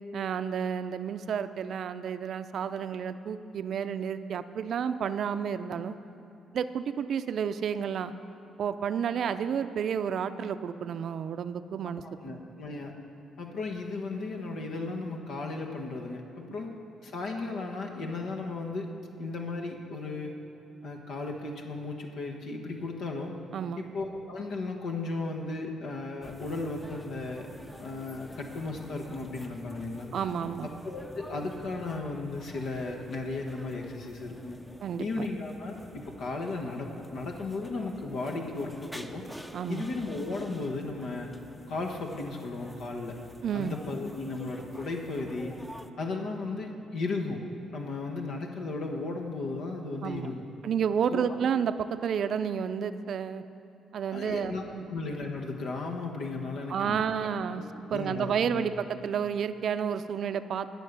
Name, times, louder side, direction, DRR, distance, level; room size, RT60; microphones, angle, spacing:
voice 1, 0.1-6.0 6.5-8.1 8.6-12.0 23.5-23.8 30.1-30.7 34.8-35.3 39.5-39.9 43.4-43.7 50.0-50.3 50.6-53.4 53.9-54.8 56.7-57.6 57.9-60.7, right 7 dB, 65° right, 12 dB, 0.5 m, -31 dB
voice 2, 12.0-12.9 13.4-16.7 17.0-20.3 20.8-23.4 23.8-27.5 27.8-30.1 30.6-34.6 35.0-39.2 39.7-41.3 41.7-43.2 43.5-45.5 46.0-47.4 47.7-50.5 51.1-51.4 54.1-54.6 54.9-57.0 57.5-58.6, left 3 dB, 75° left, 1 dB, 1.3 m, -35 dB
sound 1, 26.2-45.9, equal, 5° left, 0.6 m, -48 dB
18.5 x 6.5 x 6.7 m, 2.7 s
cardioid pair, 90°, 0 cm